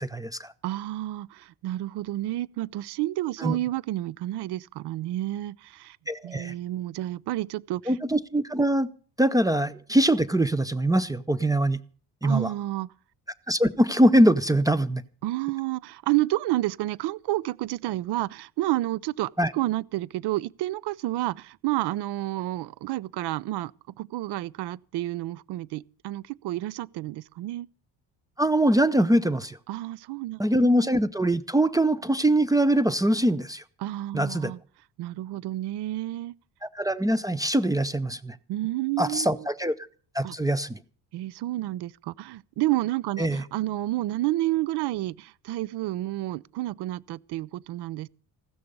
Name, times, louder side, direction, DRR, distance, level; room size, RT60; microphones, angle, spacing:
voice 1, 0.0-0.5 3.4-3.6 6.1-6.5 7.9-8.9 9.2-11.8 12.2-12.5 13.5-15.0 19.4-19.5 28.4-29.6 30.4-33.6 34.1-34.5 36.6-38.4 39.0-39.8 40.1-40.8 43.2-43.4, right 1 dB, 10° right, 0.6 m, -23 dB
voice 2, 0.6-6.0 6.2-7.9 12.2-12.9 15.2-23.7 24.0-27.7 29.7-30.4 33.8-34.6 35.0-36.3 38.5-39.5 40.2-40.4 41.1-48.1, right 16 dB, 75° right, 0.6 m, -30 dB
15.5 x 13.0 x 5.3 m
cardioid pair, 120°, 41 cm